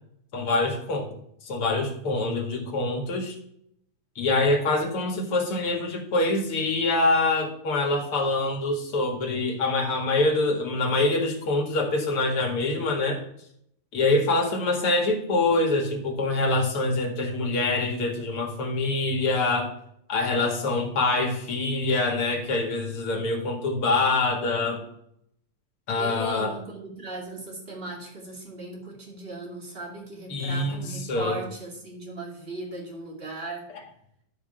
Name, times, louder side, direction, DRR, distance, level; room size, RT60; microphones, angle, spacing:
voice 1, 0.3-1.1 1.4-3.4 4.2-13.2 13.9-19.7 20.1-24.8 25.9-26.5 30.3-31.4, left 2 dB, 45° left, 1 dB, 2.4 m, -25 dB
voice 2, 26.0-33.7, right 2 dB, 20° right, -1 dB, 1.9 m, -37 dB
11.5 x 4.9 x 6.8 m, 0.72 s
omnidirectional pair, 4.1 m